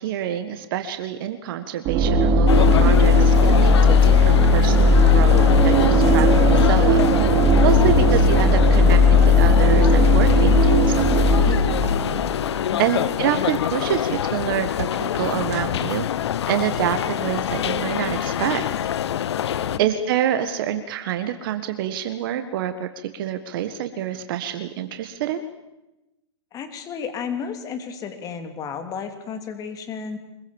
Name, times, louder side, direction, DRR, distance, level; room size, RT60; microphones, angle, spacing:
voice 1, 0.0-7.0 7.6-11.9 12.5-16.1 16.5-18.7 19.8-22.9 23.1-25.4, right 10 dB, 50° right, 9 dB, 1.6 m, -27 dB
sound 1, 1.8-12.6, left 2 dB, 30° right, 2.7 m, -16 dB
sound 2, 2.5-19.8, left 10 dB, 70° left, 0.8 m, -25 dB
voice 2, 19.6-19.9 26.5-30.2, left 6 dB, 25° left, 7 dB, 3.0 m, -33 dB
24.5 x 22.0 x 7.3 m, 0.99 s
hypercardioid pair, 135°, 15 cm